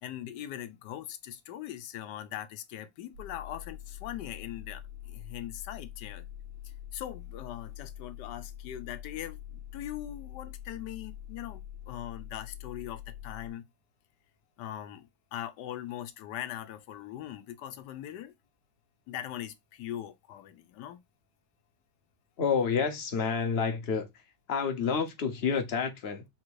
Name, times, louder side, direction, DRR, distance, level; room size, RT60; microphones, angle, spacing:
voice 1, 0.0-6.3 6.9-13.6 14.6-18.3 19.1-21.0, left 11 dB, 80° left, 1.2 m, -41 dB
sound 1, 3.1-13.5, left 11 dB, 70° right, 1.2 m, -45 dB
voice 2, 22.4-24.2 24.5-26.3, left 6 dB, 50° left, 0.8 m, -29 dB
3.9 x 2.5 x 4.5 m
omnidirectional pair, 1.8 m